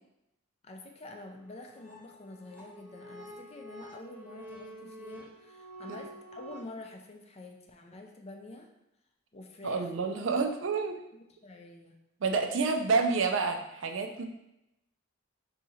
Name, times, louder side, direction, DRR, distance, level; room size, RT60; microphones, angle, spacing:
voice 1, 0.6-8.7 9.3-10.2 11.1-12.0, left 2 dB, 30° left, 3 dB, 0.5 m, -47 dB
sound 1, 1.3-6.6, right 1 dB, 5° left, 1.3 m, -48 dB
voice 2, 9.6-11.0 12.2-14.2, right 4 dB, 65° right, 5 dB, 0.5 m, -29 dB
3.7 x 2.8 x 4.2 m, 0.86 s
head